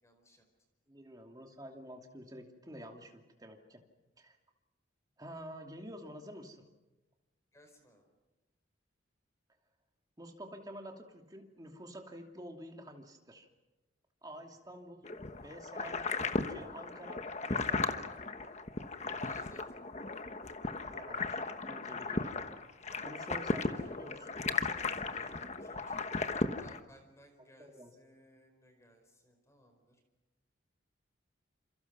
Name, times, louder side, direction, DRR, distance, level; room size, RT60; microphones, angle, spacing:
voice 1, 0.0-0.4 7.5-8.1 14.3-14.4 19.2-19.8 23.5-23.9 24.7-26.0 26.6-30.0, equal, 15° left, 5 dB, 4.6 m, -61 dB
voice 2, 0.9-3.8 4.2-4.4 5.2-6.6 10.2-13.5 14.2-15.0 15.4-16.1 16.5-18.1 20.9-22.4 23.0-24.3 27.6-27.9, equal, 20° right, 2 dB, 2.7 m, -49 dB
sound 1, 15.0-26.8, left 3 dB, 35° left, 1.2 m, -36 dB
28.5 x 27.5 x 6.2 m, 1.0 s
head